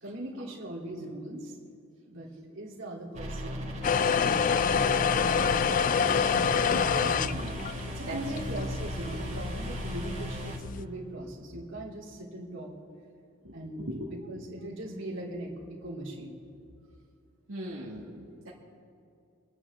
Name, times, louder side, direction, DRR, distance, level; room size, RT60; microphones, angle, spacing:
voice 1, 0.0-1.5 2.0-3.7 4.0-5.0 5.7-6.4 7.8-12.7 13.5-15.5 15.8-16.4, right 1 dB, 65° right, -4 dB, 3.4 m, -40 dB
sound 1, 3.1-10.6, equal, 35° right, 3.7 m, -37 dB
sound 2, 3.8-10.8, left 6 dB, 40° left, 0.4 m, -28 dB
voice 2, 6.9-8.2 13.9-14.1 17.5-18.5, right 1 dB, 85° right, -6 dB, 2.2 m, -40 dB
28.0 x 10.0 x 3.7 m, 2.5 s
head